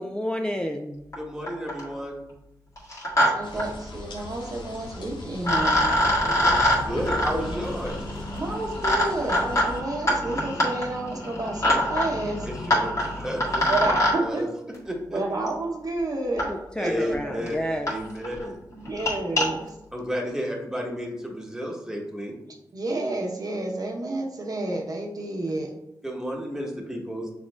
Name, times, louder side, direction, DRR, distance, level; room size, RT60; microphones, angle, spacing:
voice 1, 0.0-1.0 12.6-12.7 16.5-17.9, equal, 10° left, 3 dB, 0.4 m, -30 dB
sound 1, 1.1-1.2 1.5-1.9 2.8-3.3 3.6-3.7 4.9-5.0 5.4-14.2 15.5-15.6 16.4-16.5 17.1-17.2 17.5-17.6 17.9-18.0 18.2-18.4 18.9-19.5, left 1 dB, 45° left, 1.7 m, -24 dB
voice 2, 1.2-2.2 6.2-8.0 12.4-13.9 14.2-14.5 14.9-15.2 16.8-17.6 17.9-18.6 19.9-22.3 26.0-27.3, equal, 5° right, -1 dB, 1.2 m, -32 dB
voice 3, 3.3-5.8 8.4-12.5 13.7-14.5 15.1-16.5 16.8-17.6 18.7-19.8 22.7-25.7, right 2 dB, 55° right, 0 dB, 0.9 m, -30 dB
sound 2, 3.4-9.8, left 2 dB, 85° left, 0.7 m, -38 dB
6.1 x 3.6 x 2.4 m, 0.87 s
cardioid pair, 65°, 8 cm